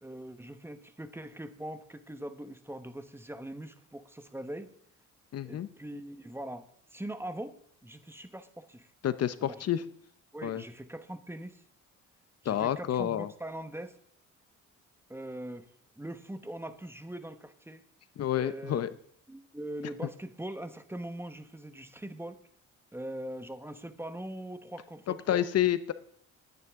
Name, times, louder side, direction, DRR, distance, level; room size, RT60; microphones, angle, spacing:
voice 1, 0.0-4.7 5.4-8.9 9.4-9.6 10.3-11.6 12.4-14.0 15.1-15.7 16.0-17.8 18.3-18.8 19.3-22.4 22.9-25.5, right 1 dB, 10° right, 10 dB, 1.1 m, -42 dB
voice 2, 5.3-5.7 9.0-9.8 10.4-10.6 12.4-13.3 18.2-18.9 25.1-25.9, left 11 dB, 55° left, 14 dB, 0.7 m, -29 dB
20.0 x 9.6 x 3.6 m, 0.67 s
cardioid pair, 90°, 30 cm